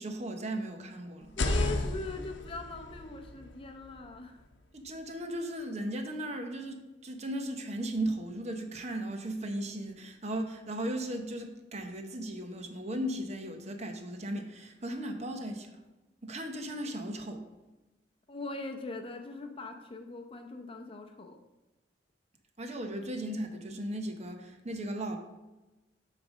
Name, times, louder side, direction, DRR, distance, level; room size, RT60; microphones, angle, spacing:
voice 1, 0.0-1.3 4.7-15.8 16.2-17.5 22.6-25.2, right 1 dB, 40° right, 5 dB, 0.8 m, -36 dB
sound 1, 1.2-5.1, left 2 dB, 90° left, 0.7 m, -35 dB
voice 2, 1.4-4.4 18.3-21.4, left 3 dB, 30° left, 4 dB, 0.7 m, -41 dB
8.6 x 3.4 x 6.3 m, 1.1 s
head